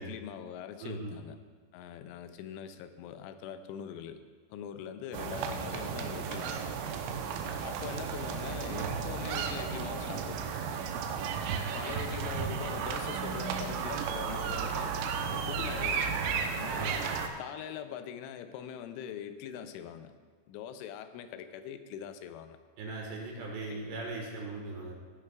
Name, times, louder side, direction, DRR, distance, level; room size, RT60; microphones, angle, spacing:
voice 1, 0.0-1.4 1.7-4.2 4.5-6.9 7.6-10.4 11.7-15.0 15.2-16.2 16.6-17.0 17.4-20.1 20.5-22.6 23.7-23.8, left 9 dB, 85° left, 9 dB, 3.1 m, -42 dB
voice 2, 0.8-1.1 16.7-17.0 22.8-24.9, right 3 dB, 70° right, -1 dB, 3.4 m, -39 dB
sound 1, 5.1-17.3, right 6 dB, 85° right, 3.2 m, -34 dB
17.5 x 10.0 x 2.4 m, 1.5 s
omnidirectional pair, 5.5 m